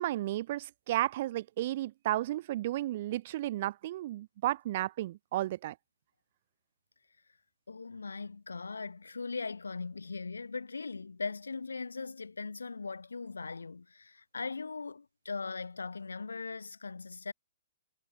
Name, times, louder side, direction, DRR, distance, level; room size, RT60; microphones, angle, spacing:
voice 1, 0.0-5.7, right 15 dB, 50° right, 1.3 m, -33 dB
voice 2, 7.7-17.3, left 4 dB, 85° left, 6.6 m, -39 dB
hypercardioid pair, 125°, 0 cm